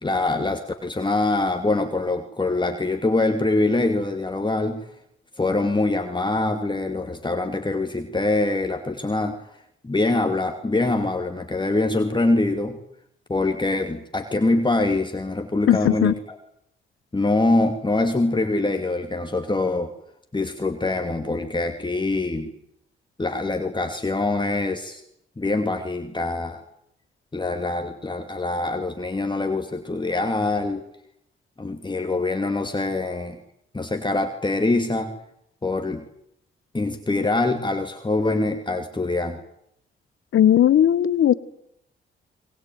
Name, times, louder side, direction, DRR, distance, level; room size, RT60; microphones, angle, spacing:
voice 1, 0.0-4.8 5.4-9.3 9.8-12.8 13.3-16.4 17.1-19.9 20.3-22.5 23.2-25.0 25.4-26.6 27.3-30.8 31.6-33.4 33.7-35.1 35.6-36.0 36.7-39.4, left 2 dB, 20° left, 5 dB, 2.5 m, -24 dB
voice 2, 15.7-16.1 40.3-41.3, left 10 dB, 80° left, 16 dB, 1.3 m, -17 dB
22.5 x 21.5 x 9.4 m, 0.77 s
cardioid pair, 70°, 21 cm